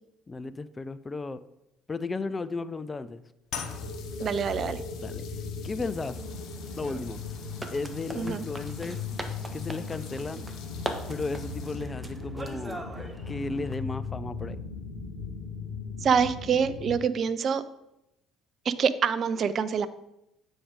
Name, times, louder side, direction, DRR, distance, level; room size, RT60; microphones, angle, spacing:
voice 1, 0.3-1.4 1.9-3.2 5.0-5.3 5.6-6.2 6.8-7.2 7.7-9.0 9.5-10.4 11.1-12.8 13.3-14.6, left 3 dB, 25° left, 14 dB, 0.4 m, -34 dB
sound 1, 3.5-17.0, left 4 dB, 90° left, 2.1 m, -38 dB
sound 2, 3.5-12.1, left 7 dB, 55° left, 0.8 m, -46 dB
voice 2, 4.2-4.8 8.2-8.4 16.0-17.6 18.7-19.9, right 6 dB, 45° right, 15 dB, 0.4 m, -26 dB
sound 3, 5.9-13.7, right 1 dB, 15° right, 0.9 m, -42 dB
8.4 x 5.1 x 3.7 m, 0.87 s
figure-of-eight pair, 55°, 0 cm